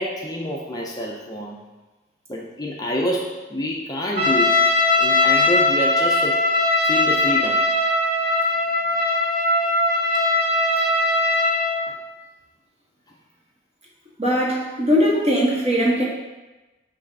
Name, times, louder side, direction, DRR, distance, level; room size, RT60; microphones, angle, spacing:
voice 1, 0.0-1.6 2.3-6.4 6.9-7.7, equal, 20° left, -2 dB, 0.5 m, -27 dB
Trumpet, 4.2-11.8, left 2 dB, 50° right, 1.7 m, -20 dB
voice 2, 14.2-16.0, equal, 35° right, -5 dB, 1.6 m, -20 dB
6.4 x 3.3 x 5.3 m, 1.1 s
head